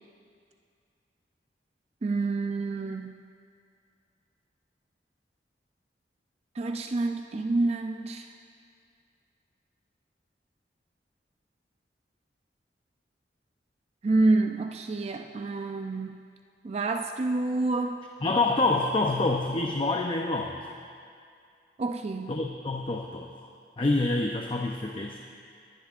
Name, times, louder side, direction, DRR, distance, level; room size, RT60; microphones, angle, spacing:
voice 1, 2.0-3.2 6.6-8.3 14.0-16.2 16.6-18.1 21.8-22.4, right 2 dB, 35° right, 5 dB, 0.4 m, -28 dB
voice 2, 18.2-20.7 22.3-23.5 23.8-25.2, left 2 dB, 30° left, 2 dB, 0.6 m, -27 dB
23.0 x 10.5 x 2.5 m, 2.3 s
head